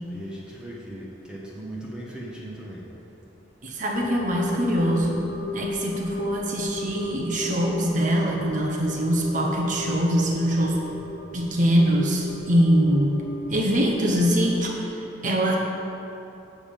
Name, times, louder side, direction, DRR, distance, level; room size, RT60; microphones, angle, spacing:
voice 1, 0.1-2.8, right 1 dB, 5° right, -6 dB, 1.1 m, -38 dB
voice 2, 3.6-10.8 11.3-13.2 13.5-15.5, equal, 40° right, -1 dB, 0.9 m, -23 dB
sound 1, 3.9-14.6, left 2 dB, 65° left, 0.6 m, -35 dB
7.4 x 7.1 x 5.1 m, 3.0 s
head